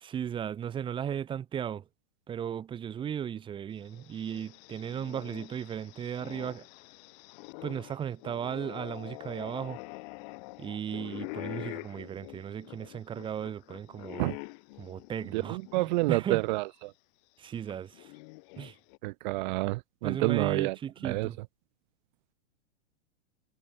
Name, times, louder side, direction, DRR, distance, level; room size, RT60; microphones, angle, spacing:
voice 1, 0.0-1.8 2.3-6.7 7.6-9.8 10.6-14.3 14.8-16.4 17.4-18.1 18.6-18.7 20.0-21.4, right 9 dB, 15° right, 2.2 m, -36 dB
sound 1, 3.8-16.1 16.5-16.6 17.7-19.0, left 28 dB, 40° left, 5.8 m, -45 dB
voice 2, 15.3-16.9 19.0-20.8 21.0-21.3, right 22 dB, 40° right, 3.2 m, -29 dB
supercardioid pair, 165°, 35 cm